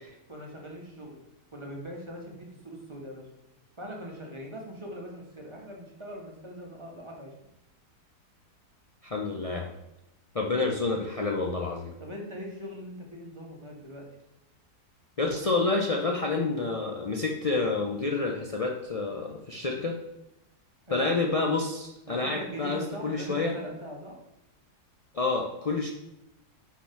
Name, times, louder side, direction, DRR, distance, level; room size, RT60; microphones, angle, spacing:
voice 1, 0.3-1.2 1.5-3.3 3.8-7.3 12.0-14.1 20.9-21.2 22.1-24.2, equal, 20° right, -1 dB, 1.7 m, -41 dB
voice 2, 9.0-9.7 10.3-11.9 15.2-20.0 20.9-23.6 25.1-25.9, left 3 dB, 50° left, 0 dB, 0.4 m, -28 dB
6.8 x 5.2 x 5.9 m, 0.90 s
omnidirectional pair, 1.7 m